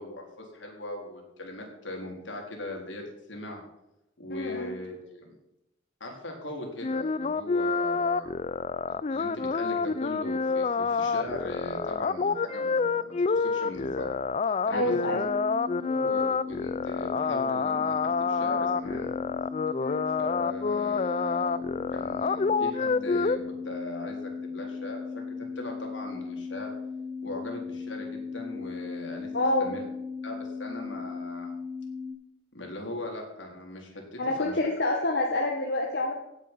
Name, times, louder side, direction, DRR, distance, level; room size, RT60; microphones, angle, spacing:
voice 1, 0.0-3.0 3.3-3.6 4.2-5.4 6.0-8.3 9.1-14.1 14.7-15.2 15.8-19.1 20.2-23.4 23.6-25.2 25.6-26.7 27.2-29.3 29.6-29.8 30.2-31.5 32.5-34.6, left 1 dB, 80° left, 1 dB, 4.0 m, -39 dB
voice 2, 4.3-4.7 14.7-15.2 19.8-20.0 29.3-29.7 34.2-36.1, left 2 dB, 60° left, 0 dB, 1.6 m, -27 dB
sound 1, 6.8-23.4, left 4 dB, 35° left, 0.4 m, -28 dB
sound 2, 15.2-32.1, left 5 dB, 5° left, 6.4 m, -37 dB
16.5 x 8.5 x 5.6 m, 0.89 s
head